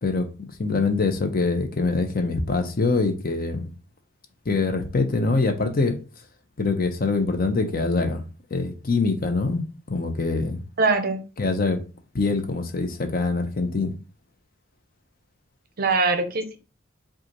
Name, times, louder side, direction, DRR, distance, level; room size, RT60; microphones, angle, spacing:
voice 1, 0.0-3.7 4.5-6.0 6.6-8.2 8.5-10.6 11.4-11.8 12.1-13.9, left 3 dB, 45° left, 0.7 m, -24 dB
voice 2, 10.8-11.2 15.8-16.6, right 3 dB, 50° right, 0.6 m, -22 dB
5.0 x 2.4 x 3.0 m
head